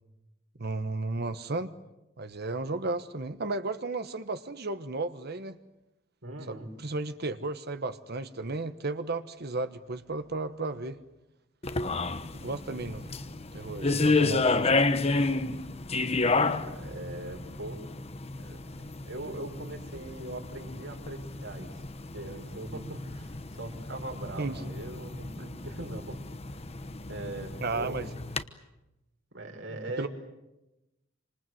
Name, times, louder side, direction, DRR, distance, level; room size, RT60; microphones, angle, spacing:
voice 1, 0.6-1.7 2.2-5.6 6.5-11.0 12.3-13.1 13.5-14.8 24.4-24.7 27.6-28.1 30.0-30.1, right 3 dB, 55° right, 10 dB, 1.2 m, -34 dB
voice 2, 6.2-6.7 16.2-17.8 18.4-18.6 19.0-21.8 22.1-26.2 27.1-28.0 29.3-30.1, right 2 dB, 70° right, 3 dB, 5.6 m, -40 dB
sound 1, 11.6-28.4, left 3 dB, 30° left, 1.1 m, -31 dB
28.0 x 26.5 x 7.8 m, 0.96 s
head